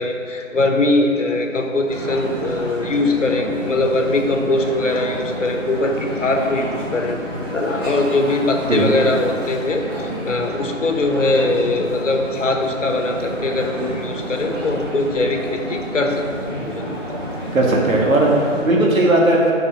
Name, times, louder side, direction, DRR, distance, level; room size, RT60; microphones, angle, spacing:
voice 1, 0.0-7.2 7.5-16.8 17.1-17.2, left 2 dB, 65° left, 3 dB, 1.2 m, -21 dB
sound 1, 1.9-18.6, equal, 20° right, 1.1 m, -30 dB
voice 2, 17.5-19.5, right 1 dB, 90° right, -2 dB, 2.1 m, -16 dB
6.8 x 5.6 x 5.7 m, 2.5 s
figure-of-eight pair, 170°, 40 cm